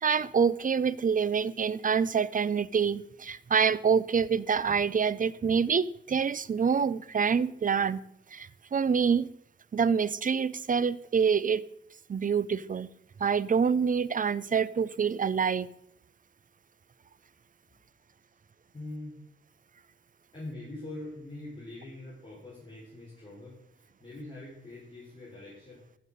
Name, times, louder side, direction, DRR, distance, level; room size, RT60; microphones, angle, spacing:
voice 1, 0.0-8.0 8.3-9.3 9.7-11.6 12.1-12.9 13.2-15.7, right 6 dB, 40° right, 18 dB, 0.5 m, -26 dB
voice 2, 18.7-19.2 20.3-25.8, left 2 dB, 25° left, -7 dB, 4.0 m, -43 dB
14.5 x 6.2 x 5.3 m, 0.75 s
wide cardioid pair, 105°, 21 cm